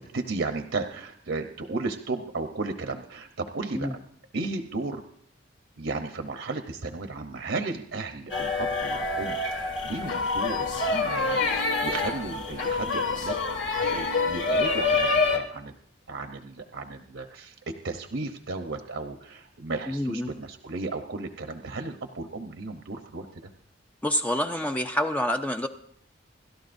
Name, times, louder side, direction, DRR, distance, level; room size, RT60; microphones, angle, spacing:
voice 1, 0.1-4.0 4.3-5.0 5.8-13.6 13.9-15.7 16.1-17.5 17.8-23.3, right 3 dB, 70° right, 6 dB, 0.9 m, -34 dB
sound 1, 8.3-15.4, left 3 dB, 70° left, 1.9 m, -26 dB
voice 2, 19.9-20.3 24.0-25.7, left 1 dB, 10° left, 5 dB, 0.5 m, -27 dB
28.5 x 13.0 x 2.6 m, 0.65 s
head